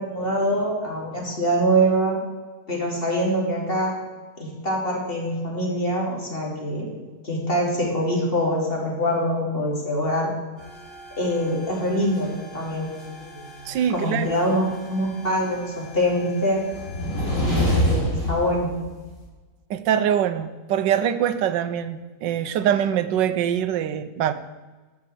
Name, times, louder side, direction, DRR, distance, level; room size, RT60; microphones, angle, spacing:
voice 1, 0.0-2.2 2.7-3.9 4.4-6.9 7.2-10.3 11.2-12.9 13.9-16.6 17.5-18.7, equal, 30° left, -2 dB, 3.0 m, -24 dB
sound 1, 10.6-19.2, equal, 50° left, 5.6 m, -29 dB
voice 2, 13.7-14.3 19.7-24.3, right 9 dB, 85° right, 12 dB, 1.4 m, -23 dB
11.5 x 7.4 x 7.6 m, 1.3 s
omnidirectional pair, 1.9 m